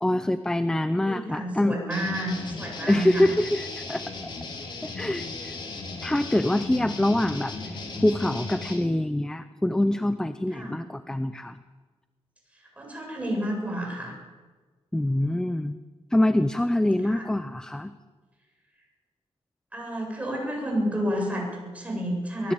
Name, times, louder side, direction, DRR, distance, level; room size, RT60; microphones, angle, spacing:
voice 1, 0.0-1.8 2.9-4.0 4.8-5.5 6.0-11.6 14.9-15.8 16.1-17.9, left 1 dB, 5° left, 10 dB, 0.7 m, -25 dB
voice 2, 1.1-3.3 10.5-10.8 12.5-14.1 17.0-17.3 19.7-22.5, equal, 10° right, -1 dB, 7.9 m, -30 dB
sound 1, 1.9-8.8, left 3 dB, 45° left, 5.0 m, -36 dB
24.5 x 19.5 x 8.9 m, 1.4 s
wide cardioid pair, 180°, 11 cm